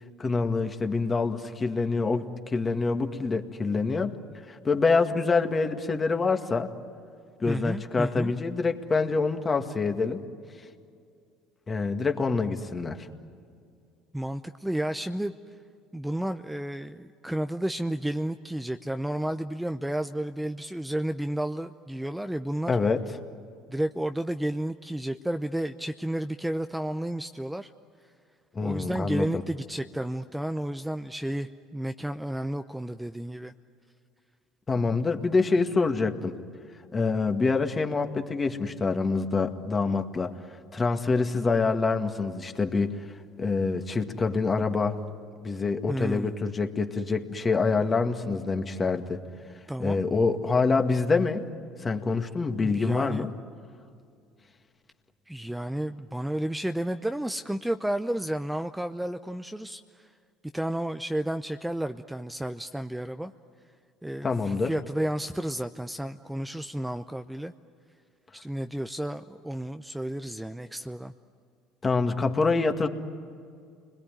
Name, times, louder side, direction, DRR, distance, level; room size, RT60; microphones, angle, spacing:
voice 1, 0.2-4.1 4.5-6.7 7.4-10.2 11.7-13.1 22.7-23.0 28.6-29.4 34.7-36.4 36.9-40.3 40.7-43.0 43.4-45.0 45.4-49.2 49.8-51.4 51.8-53.3 64.2-64.7 71.8-72.9, left 4 dB, 30° left, 6 dB, 2.0 m, -26 dB
voice 2, 7.5-8.3 14.1-15.3 15.9-22.8 23.7-27.7 28.6-33.5 45.9-46.3 49.7-50.0 52.6-53.3 55.3-60.1 60.5-63.3 64.0-67.5 68.3-71.1, right 1 dB, 5° right, 8 dB, 0.8 m, -32 dB
29.5 x 21.5 x 9.2 m, 2.3 s
hypercardioid pair, 75°, 0 cm